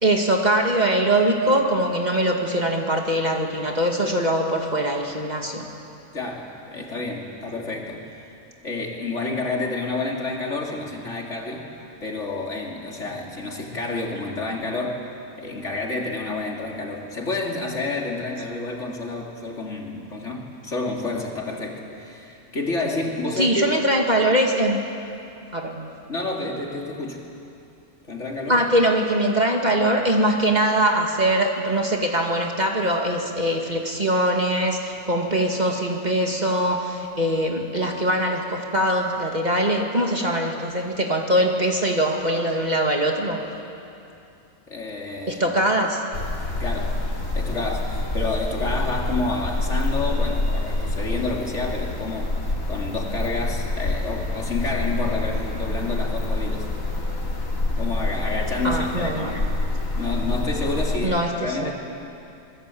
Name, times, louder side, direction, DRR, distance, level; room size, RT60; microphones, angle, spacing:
voice 1, 0.0-5.7 23.4-24.8 25.5-25.9 28.5-43.4 45.3-46.0 58.6-59.4 61.0-61.7, right 1 dB, 30° right, 1 dB, 2.2 m, -22 dB
voice 2, 6.1-8.0 8.6-11.7 12.0-15.0 15.4-23.7 26.1-27.2 28.1-28.6 44.7-45.6 46.6-47.0 47.3-52.3 52.7-56.7 57.8-59.4 60.0-61.7, left 2 dB, 60° left, -1 dB, 3.4 m, -29 dB
sound 1, 46.1-61.0, left 2 dB, 75° left, 3.5 m, -26 dB
27.0 x 21.0 x 8.6 m, 2.7 s
omnidirectional pair, 1.4 m